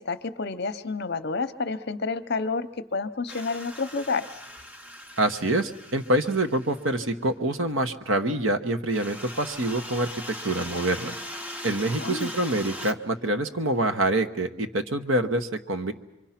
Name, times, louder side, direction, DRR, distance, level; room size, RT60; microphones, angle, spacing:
voice 1, 0.0-4.2 12.0-12.3, left 4 dB, 50° left, 11 dB, 0.8 m, -29 dB
sound 1, 3.3-7.1 8.9-12.9, equal, 5° right, 0.8 m, -40 dB
voice 2, 5.2-10.1 10.4-11.1 11.6-15.9, right 1 dB, 70° right, 8 dB, 1.1 m, -26 dB
26.0 x 24.0 x 5.9 m, 0.97 s
head